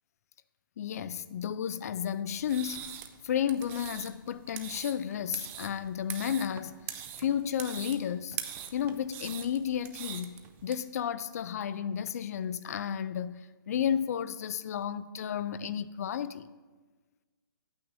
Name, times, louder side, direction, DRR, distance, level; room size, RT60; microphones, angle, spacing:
voice 1, 0.8-2.9 3.2-6.8 7.2-8.4 8.7-16.5, left 9 dB, 45° left, 0.4 m, -32 dB
sound 1, 2.4-10.7, right 10 dB, 15° right, 0.4 m, -43 dB
12.0 x 8.8 x 2.7 m
hypercardioid pair, 145°, 12 cm